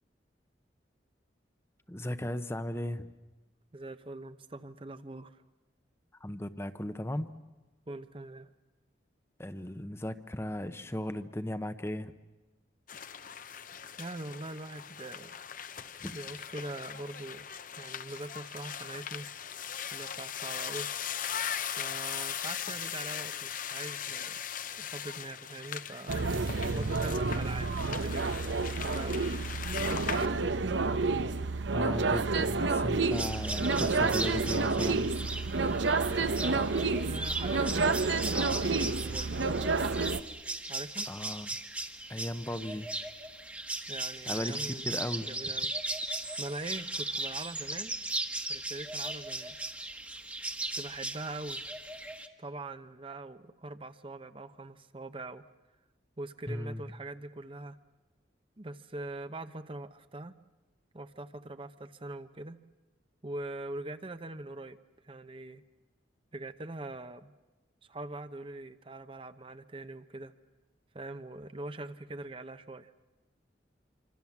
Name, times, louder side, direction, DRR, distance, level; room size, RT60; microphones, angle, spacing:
voice 1, 1.9-3.1 6.2-7.3 9.4-12.1 16.0-16.1 31.7-35.1 41.1-41.5 42.1-42.9 44.3-44.6 44.8-45.3 56.5-56.8, left 1 dB, 15° left, 11 dB, 0.8 m, -36 dB
voice 2, 3.7-5.4 7.9-8.5 14.0-15.4 16.1-17.4 17.8-19.3 19.9-20.9 21.8-24.4 24.7-26.2 26.7-28.4 28.8-29.2 29.8-30.4 37.0-39.4 40.7-41.1 43.9-44.9 45.2-45.7 46.4-47.9 48.5-49.6 50.7-51.7 52.4-55.4 56.2-57.8 58.6-60.4 60.9-62.6 63.2-64.8 65.0-65.6 66.3-67.3 67.9-70.3 70.9-72.9, right 2 dB, 30° right, 11 dB, 0.8 m, -42 dB
sound 1, 12.9-30.3, left 8 dB, 45° left, 0.8 m, -39 dB
sound 2, 26.1-40.2, right 3 dB, 80° right, 1.0 m, -29 dB
sound 3, 33.1-52.3, right 2 dB, 10° right, 1.3 m, -37 dB
26.5 x 25.0 x 7.3 m, 1.2 s
head